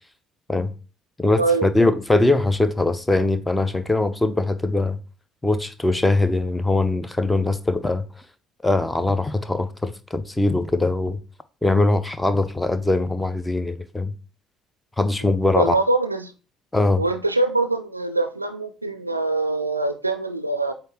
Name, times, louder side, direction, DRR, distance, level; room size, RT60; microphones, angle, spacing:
voice 1, 1.2-5.0 5.4-8.0 8.6-11.2 11.6-14.1 15.0-15.8 16.7-17.0, left 2 dB, 10° left, 0.7 m, -21 dB
voice 2, 15.6-16.3 17.0-20.7, right 2 dB, 85° right, 0.4 m, -23 dB
7.9 x 2.7 x 4.4 m
figure-of-eight pair, 50°, 0 cm